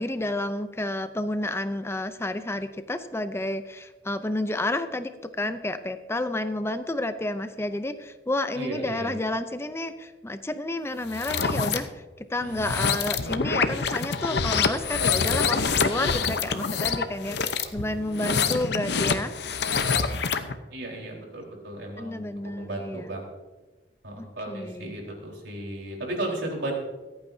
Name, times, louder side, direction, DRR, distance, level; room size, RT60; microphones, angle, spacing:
voice 1, 0.0-12.0 12.3-19.3 22.0-23.1 24.2-24.9, left 1 dB, 15° left, 10 dB, 0.5 m, -30 dB
voice 2, 8.5-9.1 12.4-12.7 20.7-23.2 24.0-26.7, right 1 dB, 80° right, -1 dB, 4.0 m, -35 dB
sound 1, 11.1-11.8 12.5-20.5, left 5 dB, 65° left, 0.8 m, -26 dB
25.0 x 8.9 x 2.7 m, 1.2 s
head